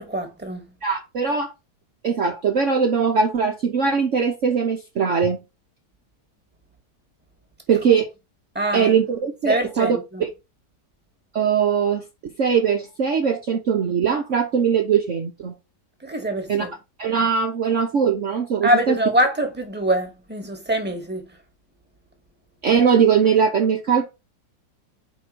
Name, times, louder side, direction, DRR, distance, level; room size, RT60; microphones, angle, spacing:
voice 1, 0.0-0.6 8.5-8.9 9.5-10.2 16.0-16.7 18.6-21.4, right 1 dB, 5° right, 1.6 m, -24 dB
voice 2, 0.8-1.5 2.0-5.4 7.7-8.1 8.7-10.0 11.3-12.0 12.4-15.5 16.5-16.7 17.0-18.9 22.6-24.1, right 6 dB, 50° right, 1.1 m, -20 dB
4.9 x 4.2 x 5.9 m
omnidirectional pair, 1.8 m